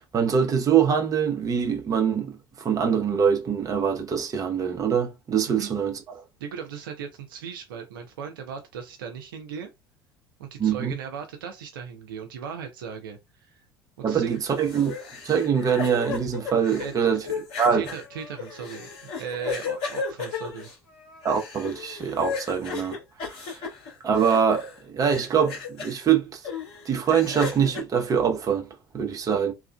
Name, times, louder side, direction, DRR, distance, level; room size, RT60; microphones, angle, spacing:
voice 1, 0.0-6.2 10.6-10.9 14.0-14.9 15.2-17.2 17.6-17.8 21.2-23.0 23.5-23.6 24.0-26.4 26.9-28.7 28.9-29.5, right 7 dB, 30° right, 0.7 m, -24 dB
voice 2, 6.4-9.7 10.4-13.6 14.0-14.4 16.8-17.5 17.7-20.7, right 7 dB, 70° right, 0.5 m, -37 dB
sound 1, 14.3-24.8 25.1-26.0 26.4-27.8, left 5 dB, 50° left, 1.8 m, -35 dB
3.1 x 2.4 x 2.2 m
figure-of-eight pair, 65°, 12 cm